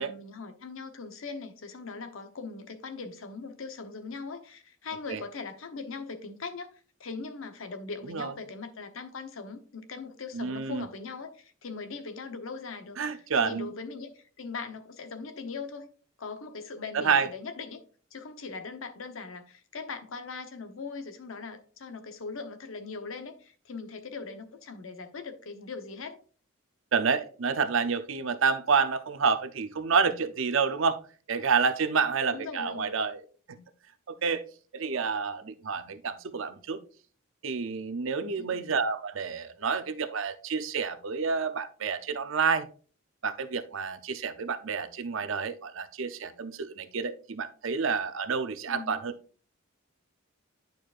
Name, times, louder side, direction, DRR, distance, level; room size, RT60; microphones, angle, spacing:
voice 1, 0.0-15.9 16.2-17.8 18.1-26.2 32.3-32.9 38.4-38.7 48.7-49.0, left 4 dB, 75° left, 0.9 m, -40 dB
voice 2, 10.3-10.8 13.0-13.7 16.9-17.3 26.9-31.0 31.3-33.6 34.1-34.4 34.7-36.8 37.4-42.7 43.2-49.1, right 5 dB, 70° right, 0.6 m, -29 dB
10.5 x 4.6 x 2.5 m
head